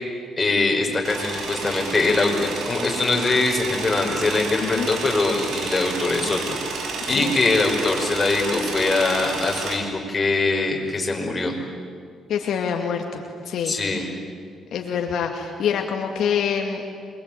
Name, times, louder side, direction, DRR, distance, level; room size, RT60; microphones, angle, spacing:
voice 1, 0.4-11.5 13.6-14.0, left 3 dB, 25° left, 1 dB, 5.9 m, -22 dB
sound 1, 1.0-9.8, right 3 dB, 70° right, 5.7 m, -31 dB
voice 2, 12.3-14.1 14.7-16.8, left 7 dB, 70° left, 3 dB, 2.3 m, -26 dB
27.5 x 23.0 x 9.1 m, 2.2 s
cardioid pair, 90°, 0 cm